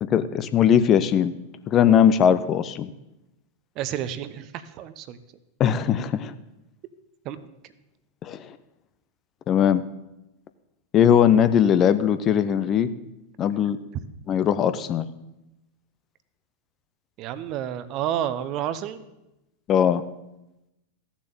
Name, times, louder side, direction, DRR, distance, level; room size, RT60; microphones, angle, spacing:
voice 1, 0.0-1.3 1.7-2.9 5.6-6.3 8.2-8.6 9.5-9.8 10.9-12.9 13.4-13.8 14.3-15.1 19.7-20.0, left 9 dB, 30° left, 12 dB, 0.6 m, -20 dB
voice 2, 3.8-5.2 7.2-7.5 13.9-14.0 17.2-19.0, right 10 dB, 40° right, 13 dB, 0.8 m, -30 dB
14.5 x 7.3 x 6.9 m, 0.93 s
figure-of-eight pair, 90°, 0 cm